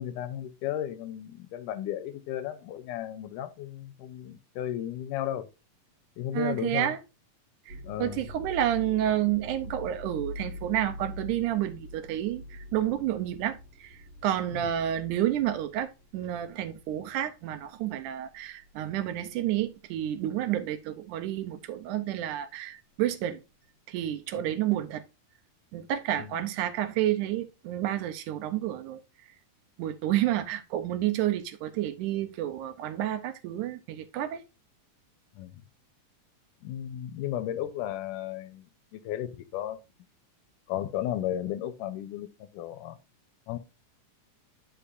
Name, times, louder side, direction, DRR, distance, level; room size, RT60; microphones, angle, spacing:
voice 1, 0.0-5.5 6.2-6.9 7.8-8.3 14.5-14.7 24.4-24.5 26.2-26.4 35.4-35.5 36.6-38.7 38.9-39.8 40.7-43.0 43.5-43.6, left 11 dB, 80° left, 2.2 m, -34 dB
voice 2, 6.3-7.0 7.7-23.4 23.9-25.0 25.7-29.0 29.8-34.4, right 12 dB, 80° right, 2.0 m, -30 dB
sound 1, 7.7-17.1 17.5-17.9 18.6-18.9, left 1 dB, 55° right, 2.2 m, -44 dB
10.0 x 5.3 x 2.5 m
omnidirectional pair, 3.7 m